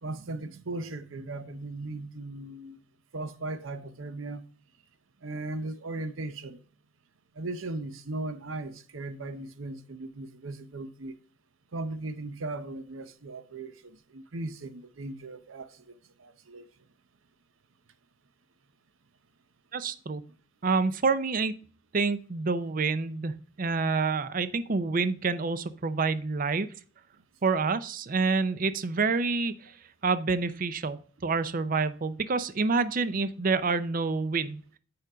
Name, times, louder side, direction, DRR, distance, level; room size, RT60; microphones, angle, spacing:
voice 1, 0.0-2.8 3.1-4.4 5.2-6.6 7.4-11.2 11.7-15.9 16.2-16.7 28.2-28.3, right 2 dB, 90° right, 0.7 m, -37 dB
voice 2, 19.7-20.2 20.6-21.5 21.9-26.7 27.4-29.7 30.0-34.6, right 4 dB, 45° right, 0.5 m, -27 dB
6.9 x 5.1 x 4.8 m
head